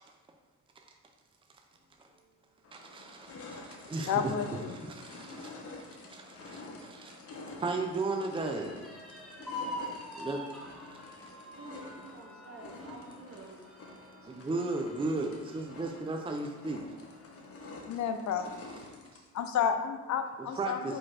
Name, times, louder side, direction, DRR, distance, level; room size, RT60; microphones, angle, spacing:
sound 1, 2.0-2.1 2.6-19.4, left 3 dB, 50° left, 1.1 m, -48 dB
voice 1, 2.7-4.3 4.7-8.7 10.1-10.4 10.9-11.0 14.3-16.9 20.6-21.0, right 3 dB, 15° right, 3 dB, 0.6 m, -35 dB
voice 2, 4.1-4.7 17.9-18.4 19.3-21.0, left 7 dB, 65° left, 8 dB, 0.7 m, -31 dB
sound 2, 8.4-16.0 16.5-16.6 17.0-17.7, left 1 dB, ahead, 1.2 m, -45 dB
voice 3, 11.3-13.6 15.6-15.8 16.9-17.2 17.8-17.9 18.6-18.7 19.1-19.2, right 4 dB, 45° right, -2 dB, 0.9 m, -51 dB
5.2 x 4.2 x 4.3 m, 1.2 s
cardioid pair, 90°, 30 cm